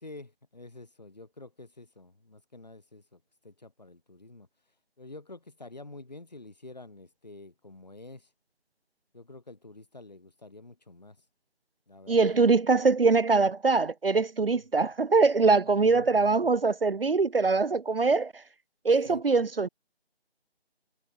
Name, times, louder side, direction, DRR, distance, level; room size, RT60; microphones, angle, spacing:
voice 1, 0.0-4.5 5.0-8.3 9.1-11.2 11.9-12.4 15.6-16.5 19.0-19.2, left 2 dB, 40° left, 5.2 m, -48 dB
voice 2, 12.1-18.4 18.8-19.7, right 4 dB, 60° right, 0.6 m, -23 dB
figure-of-eight pair, 180°, 32 cm